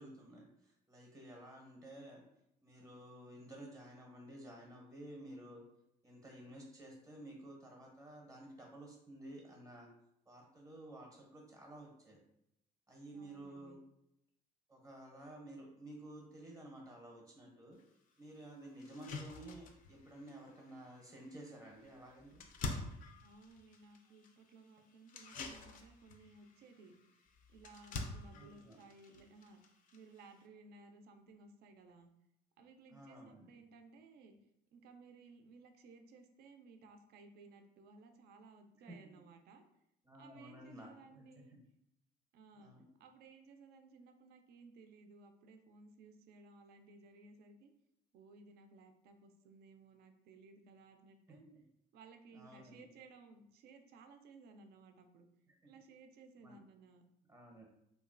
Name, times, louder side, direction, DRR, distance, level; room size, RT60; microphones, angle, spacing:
voice 1, 0.0-2.2 2.6-5.6 6.0-9.9 10.3-12.2 12.9-13.8 14.7-17.8 18.2-22.5 28.3-28.8 32.9-33.5 38.9-39.0 40.0-41.6 42.5-42.8 51.3-51.5 52.3-52.8 55.5-55.6 56.4-56.6 57.3-57.6, right 1 dB, 20° right, -1 dB, 0.6 m, -53 dB
voice 2, 13.1-13.8 23.2-27.0 27.5-32.1 32.6-34.4 34.7-39.6 40.2-41.6 42.3-42.7 43.0-47.7 48.1-51.4 51.9-55.3 55.7-57.0, right 3 dB, 70° right, 6 dB, 0.4 m, -59 dB
sound 1, 17.8-17.9 18.3-18.4 18.8-30.5, left 3 dB, 55° left, 0.4 m, -49 dB
2.9 x 2.3 x 2.4 m, 0.81 s
cardioid pair, 110°, 17 cm